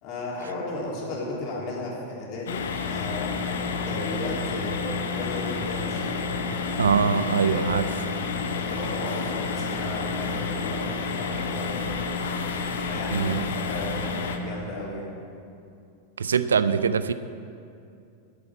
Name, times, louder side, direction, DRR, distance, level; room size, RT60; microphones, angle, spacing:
voice 1, 0.0-3.4 3.8-6.1 7.2-8.1 8.6-11.9 12.8-15.1, left 1 dB, 40° left, -4 dB, 3.6 m, -35 dB
sound 1, 2.5-14.4, left 4 dB, 60° left, 1.1 m, -30 dB
voice 2, 6.8-7.9 13.1-13.4 16.2-17.1, right 6 dB, 70° right, 14 dB, 0.4 m, -23 dB
10.5 x 8.4 x 8.0 m, 2.5 s
figure-of-eight pair, 90°, 0 cm